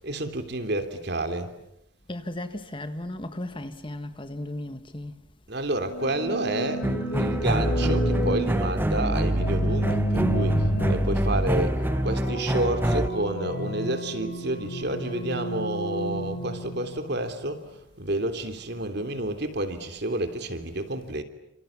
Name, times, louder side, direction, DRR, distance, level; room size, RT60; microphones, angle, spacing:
voice 1, 0.0-1.5 5.5-17.7 18.0-21.2, right 1 dB, 55° right, 3.3 m, -30 dB
voice 2, 2.1-5.1, left 1 dB, 25° left, 1.6 m, -35 dB
sound 1, 5.8-17.7, right 1 dB, 55° left, 6.6 m, -31 dB
sound 2, 6.8-13.1, equal, 10° right, 1.1 m, -25 dB
29.5 x 27.5 x 7.3 m
head